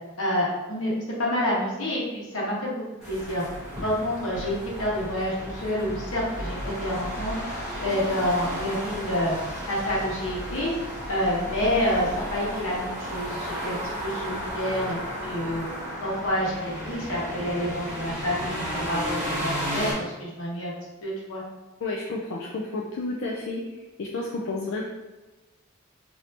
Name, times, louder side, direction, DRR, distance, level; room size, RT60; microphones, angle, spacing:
voice 1, 0.2-3.4 3.8-7.3 7.8-9.3 9.7-10.7 11.1-13.8 14.0-15.6 16.0-20.7 21.0-21.4, left 1 dB, 85° left, -4 dB, 1.1 m, -28 dB
sound 1, 3.0-19.9, equal, 5° right, 1.2 m, -33 dB
voice 2, 21.8-23.6 24.0-24.8, left 2 dB, 65° left, -2 dB, 0.4 m, -31 dB
3.2 x 2.7 x 2.8 m, 1.1 s
head